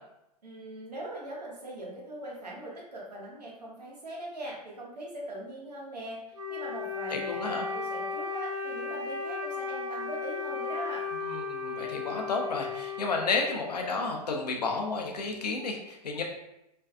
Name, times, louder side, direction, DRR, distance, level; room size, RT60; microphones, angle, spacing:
voice 1, 0.4-6.2 6.5-11.1, right 1 dB, 80° right, -4 dB, 0.8 m, -41 dB
Wind instrument woodwind instrument, 6.3-13.9, left 4 dB, 50° right, 1.0 m, -35 dB
voice 2, 7.1-7.6 11.1-16.2, left 4 dB, 75° left, 2 dB, 0.5 m, -32 dB
2.5 x 2.3 x 2.3 m, 0.86 s
figure-of-eight pair, 90°, 21 cm